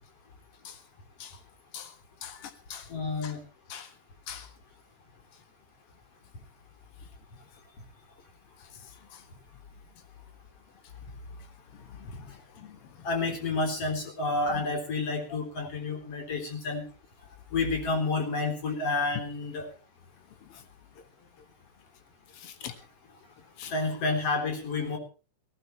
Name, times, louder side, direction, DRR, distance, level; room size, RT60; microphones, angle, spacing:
voice 1, 2.2-2.9 3.2-3.3 3.7-3.9 4.3-4.5 9.1-9.2 11.8-13.1 14.5-14.6 15.6-15.7 20.5-20.6 22.3-22.7 23.6-23.7, left 8 dB, 75° left, 8 dB, 1.2 m, -43 dB
voice 2, 2.9-3.4 13.0-16.8 17.5-19.7 23.7-25.0, left 3 dB, 35° left, 3 dB, 4.3 m, -29 dB
19.0 x 17.5 x 3.2 m, 0.36 s
omnidirectional pair, 5.0 m